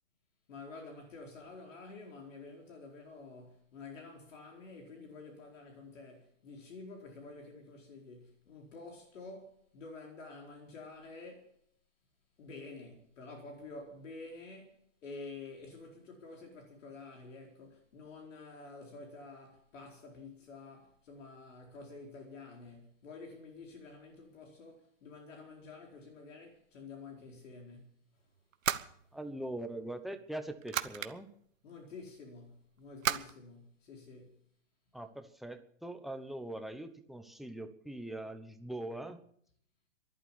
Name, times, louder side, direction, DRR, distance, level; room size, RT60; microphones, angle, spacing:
voice 1, 0.5-11.5 12.4-28.0 31.6-34.4, left 3 dB, 70° left, 4.5 m, -49 dB
sound 1, 28.4-29.7 30.3-31.1 33.0-33.3, right 9 dB, 90° right, 1.2 m, -34 dB
voice 2, 29.1-31.3 34.9-39.2, right 1 dB, ahead, 1.0 m, -42 dB
13.5 x 11.5 x 8.3 m
hypercardioid pair, 140°, 39 cm